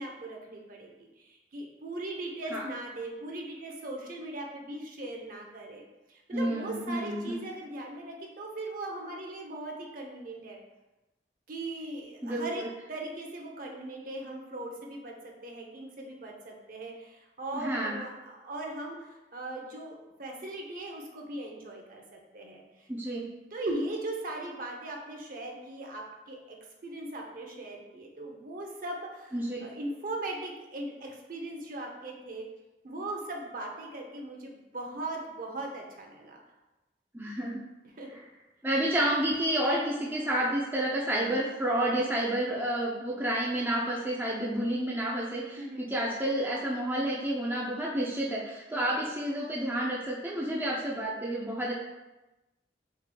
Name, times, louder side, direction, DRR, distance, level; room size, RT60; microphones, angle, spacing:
voice 1, 0.0-5.8 6.1-10.6 11.5-22.9 23.5-26.4 26.8-32.5 32.8-36.4 37.9-38.1 45.6-45.9 48.7-49.0, right 2 dB, 50° right, 1 dB, 0.7 m, -39 dB
voice 2, 6.3-7.4 12.2-12.7 17.5-18.0 22.9-23.3 29.3-29.6 37.1-37.6 38.1-38.2 38.6-51.7, right 1 dB, 10° right, -4 dB, 0.4 m, -30 dB
6.5 x 3.1 x 2.2 m, 1.0 s
head